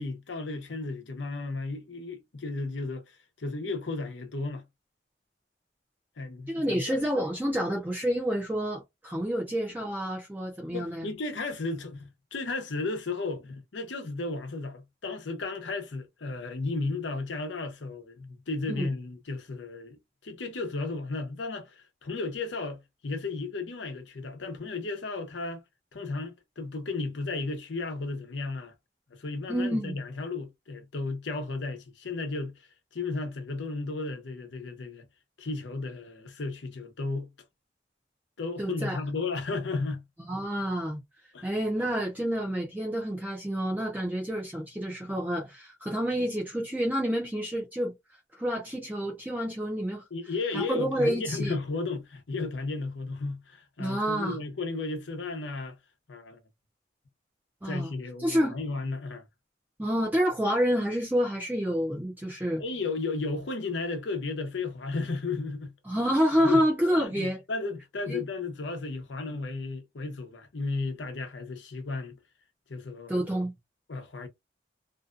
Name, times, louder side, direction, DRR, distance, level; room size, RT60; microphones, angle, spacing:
voice 1, 0.0-4.6 6.2-7.0 10.7-25.6 25.9-28.7 29.1-32.7 32.9-35.1 35.4-37.3 38.4-40.0 41.3-41.5 50.1-55.8 56.1-56.4 57.6-59.3 62.6-65.7 66.4-66.7 67.0-72.2 72.7-73.3 73.9-74.3, left 3 dB, 85° left, 0.7 m, -34 dB
voice 2, 6.5-11.1 18.7-18.9 29.5-30.0 38.6-39.0 40.3-41.0 41.4-47.9 48.4-50.0 50.5-51.5 53.8-54.4 57.6-57.9 58.2-58.6 59.8-62.6 65.8-67.4 68.1-68.2 73.1-73.5, equal, 10° right, 0.5 m, -28 dB
2.6 x 2.3 x 2.4 m
head